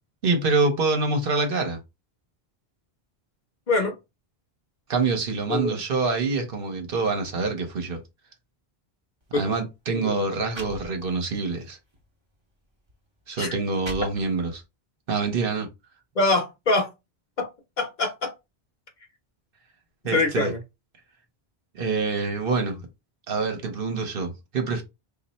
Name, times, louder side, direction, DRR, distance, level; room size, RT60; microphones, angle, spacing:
voice 1, 0.2-1.8 4.9-8.0 9.3-11.8 13.3-14.6 15.1-15.7 20.0-20.5 21.7-22.9 23.3-24.8, right 3 dB, 65° right, 1.0 m, -26 dB
voice 2, 5.5-5.8 9.3-9.5 10.0-10.2 13.4-13.5 16.2-16.9 17.4-17.5 17.8-18.3 20.1-20.6, left 3 dB, 50° left, 0.9 m, -24 dB
sound 1, 9.2-9.4 10.1-10.2 10.5-11.4 11.9-12.1 12.9-13.0 13.5-14.6, right 1 dB, 30° right, 0.8 m, -41 dB
3.1 x 2.4 x 4.1 m
omnidirectional pair, 1.0 m